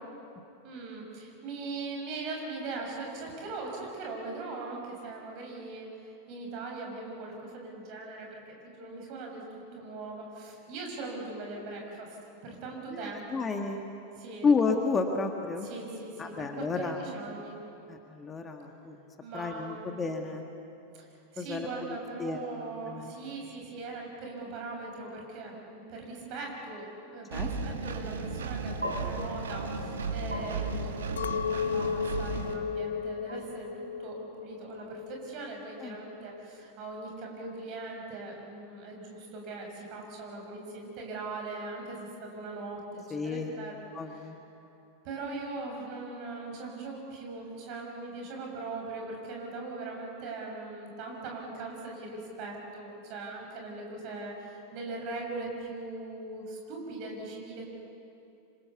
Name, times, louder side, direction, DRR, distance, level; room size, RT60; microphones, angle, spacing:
voice 1, 0.6-9.4 9.7-13.5 14.2-14.5 15.6-17.6 19.2-19.9 20.9-21.1 21.3-43.7 44.1-44.3 45.0-57.6, right 3 dB, 40° right, 0 dB, 7.0 m, -40 dB
voice 2, 12.9-13.8 14.4-15.7 16.2-17.0 17.9-19.0 19.3-20.4 21.4-21.7 22.2-23.3 27.3-27.8 35.8-36.0 43.1-43.5 43.9-44.4, left 4 dB, 20° left, 4 dB, 1.8 m, -31 dB
Engine, 27.3-32.5, right 4 dB, 65° right, 1.9 m, -35 dB
sound 1, 28.8-37.1, equal, 85° right, 3.5 m, -43 dB
Chink clink, 31.2-35.6 35.9-36.5, left 6 dB, 65° left, 0.6 m, -35 dB
27.0 x 26.0 x 7.1 m, 2.8 s
figure-of-eight pair, 90°, 0 cm